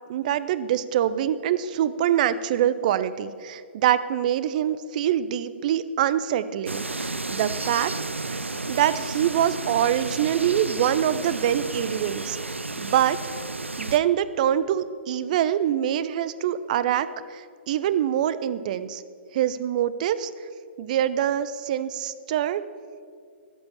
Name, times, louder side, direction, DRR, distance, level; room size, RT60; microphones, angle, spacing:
voice 1, 0.1-7.9 8.3-8.4 8.7-13.2 13.8-19.0 19.3-20.3 20.8-22.6, right 10 dB, 40° right, 15 dB, 0.6 m, -24 dB
sound 1, 6.7-14.0, right 2 dB, 80° right, 0.6 m, -32 dB
13.5 x 7.9 x 7.2 m, 2.2 s
figure-of-eight pair, 120°, 6 cm